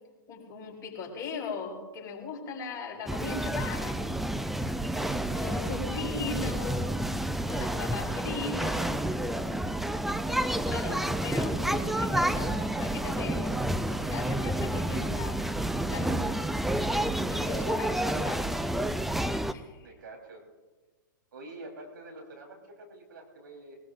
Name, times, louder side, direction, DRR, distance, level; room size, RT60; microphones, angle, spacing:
voice 1, 0.3-4.2 4.9-6.9 7.5-9.0 10.6-15.4 15.9-16.3 17.3-18.4 19.5-19.9, left 5 dB, 30° left, -2 dB, 4.9 m, -39 dB
sound 1, 3.1-19.5, right 1 dB, ahead, 0.4 m, -29 dB
voice 2, 5.4-6.1 10.6-11.2 18.1-18.3 19.8-20.4 21.3-23.8, right 2 dB, 75° right, 0 dB, 3.9 m, -47 dB
20.5 x 19.5 x 2.6 m, 1.2 s
hypercardioid pair, 115°, 11 cm